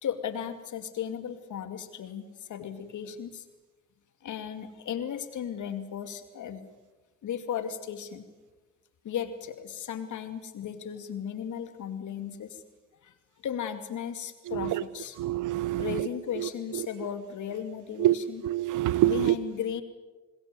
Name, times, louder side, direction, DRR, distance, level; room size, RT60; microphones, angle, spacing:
voice 1, 0.0-3.4 4.2-6.7 7.2-8.3 9.0-12.6 13.0-13.1 13.4-15.2 15.8-18.4 19.0-19.8, left 8 dB, 70° left, 2.6 m, -35 dB
voice 2, 14.5-14.8 15.2-16.1 16.4-16.5 18.0-18.1 18.4-19.3, right 14 dB, 75° right, 0.9 m, -25 dB
26.5 x 20.5 x 7.9 m
supercardioid pair, 50°, 31 cm